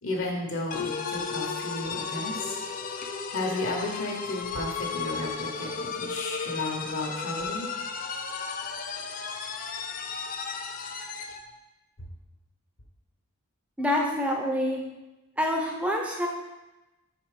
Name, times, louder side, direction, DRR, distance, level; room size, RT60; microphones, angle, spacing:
voice 1, 0.0-2.6 3.3-7.7, left 2 dB, 60° left, 0 dB, 1.1 m, -33 dB
sound 1, 0.7-11.4, left 5 dB, 40° left, 0.4 m, -34 dB
voice 2, 13.8-14.8 15.4-16.3, left 1 dB, 5° right, 0 dB, 0.8 m, -26 dB
5.7 x 4.2 x 5.0 m, 1.0 s
head